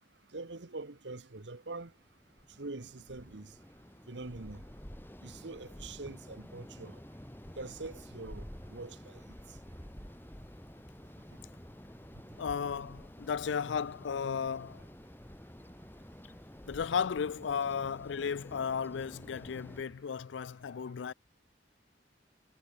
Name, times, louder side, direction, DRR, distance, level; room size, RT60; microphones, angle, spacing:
voice 1, 0.3-1.9 2.6-3.5 4.1-4.6 5.2-7.0 7.6-8.4 8.7-9.2, right 3 dB, 75° right, 1.3 m, -44 dB
sound 1, 1.9-19.8, equal, 10° left, 2.1 m, -50 dB
voice 2, 12.4-14.8 16.7-21.1, left 6 dB, 85° left, 0.4 m, -34 dB
head